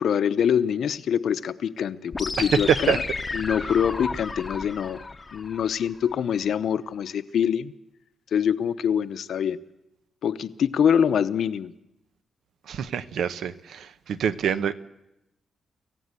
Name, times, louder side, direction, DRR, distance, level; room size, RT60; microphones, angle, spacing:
voice 1, 0.0-3.0 3.3-5.0 5.3-7.7 8.3-9.6 10.2-11.7, left 8 dB, 65° left, 12 dB, 0.8 m, -24 dB
sound 1, 2.1-6.1, left 3 dB, 20° left, 0.9 m, -33 dB
voice 2, 2.4-3.0 12.7-14.7, right 8 dB, 75° right, 12 dB, 0.9 m, -25 dB
25.5 x 15.5 x 8.3 m, 0.94 s
wide cardioid pair, 160°, 0 cm